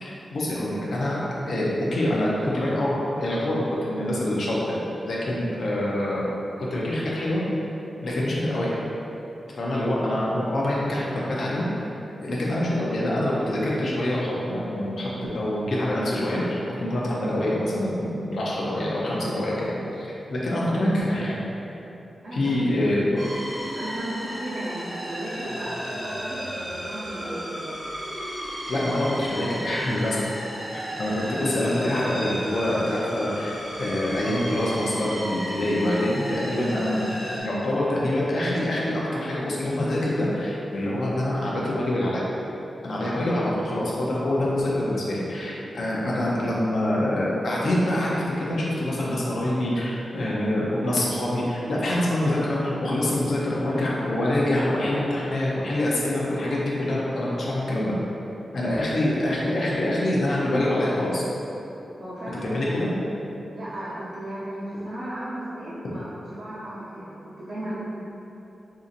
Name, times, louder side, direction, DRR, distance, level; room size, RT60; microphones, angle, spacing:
voice 1, 0.0-7.4 8.0-8.8 9.6-11.9 12.2-15.1 15.3-21.4 22.3-23.2 28.7-30.2 30.7-37.0 37.4-42.3 42.8-57.9 58.5-61.2 62.4-62.9, left 1 dB, 60° left, -6 dB, 0.5 m, -25 dB
voice 2, 22.2-23.2 23.7-27.8 62.0-62.8 63.5-67.8, right 1 dB, 90° right, -14 dB, 0.8 m, -35 dB
sound 1, 23.2-37.4, equal, 30° right, 1.2 m, -34 dB
3.9 x 2.7 x 2.5 m, 3.0 s
wide cardioid pair, 170°, 0 cm